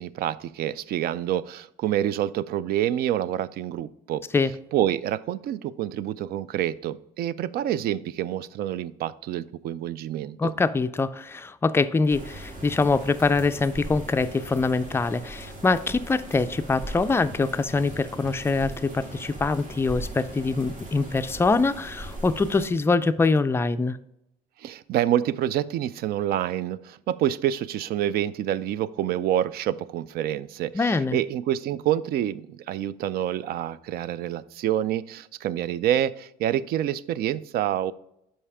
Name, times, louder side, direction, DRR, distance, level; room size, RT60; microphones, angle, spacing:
voice 1, 0.0-4.2 4.7-10.5 24.6-37.9, right 11 dB, 65° right, 0.4 m, -27 dB
voice 2, 10.4-24.0 30.7-31.2, left 3 dB, 15° left, 0.3 m, -24 dB
sound 1, 12.1-22.7, right 1 dB, 45° right, 1.9 m, -39 dB
5.6 x 5.4 x 4.8 m
cardioid pair, 110°, 17 cm